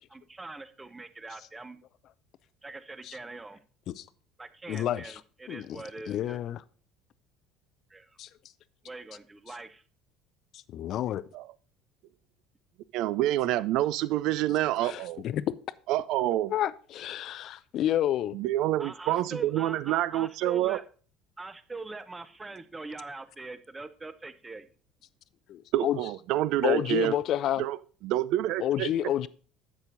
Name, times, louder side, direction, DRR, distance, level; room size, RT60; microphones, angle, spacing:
voice 1, 0.1-1.8 2.6-3.6 4.4-6.4 7.9-8.2 8.8-9.8 18.8-20.9 21.4-24.7, right 3 dB, 15° right, 0.7 m, -43 dB
voice 2, 4.7-5.2 5.5-5.8 6.1-6.6 8.2-8.3 10.7-11.2 14.8-15.5 16.5-18.4 25.5-26.0 26.6-27.6 28.6-29.3, left 12 dB, 50° left, 0.4 m, -29 dB
voice 3, 12.9-15.2 15.9-16.5 18.3-20.8 25.7-27.2 27.6-27.8 28.0-28.9, right 14 dB, 55° right, 0.3 m, -27 dB
12.0 x 8.2 x 2.6 m
figure-of-eight pair, 60°, 0 cm